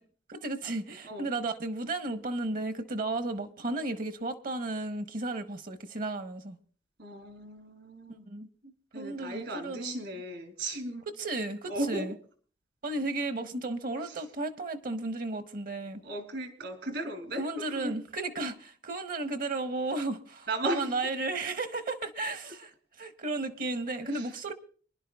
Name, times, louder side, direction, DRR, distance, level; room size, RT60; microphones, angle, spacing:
voice 1, 0.3-6.6 8.1-10.0 11.1-12.1 12.8-16.0 17.4-22.7 23.0-24.5, right 2 dB, 50° right, 0.8 m, -34 dB
voice 2, 7.0-8.2 8.9-11.1 11.7-12.1 14.0-14.2 16.0-18.0 20.5-21.0 22.3-22.5 24.0-24.5, right 2 dB, 80° right, 2.5 m, -36 dB
25.5 x 11.0 x 2.3 m
head